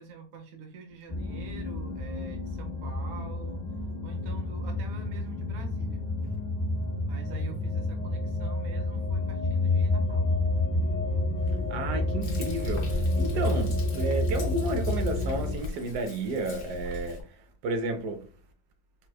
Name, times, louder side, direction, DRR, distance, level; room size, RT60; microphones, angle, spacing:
voice 1, 0.0-3.7 4.0-6.1 7.1-10.3, right 5 dB, 55° right, 0.8 m, -46 dB
sound 1, 1.1-15.5, left 2 dB, 85° left, 0.4 m, -29 dB
voice 2, 11.5-18.2, right 2 dB, 80° right, 1.2 m, -32 dB
Frying (food), 12.2-17.2, left 3 dB, 50° left, 0.7 m, -41 dB
4.4 x 2.1 x 2.2 m
omnidirectional pair, 1.8 m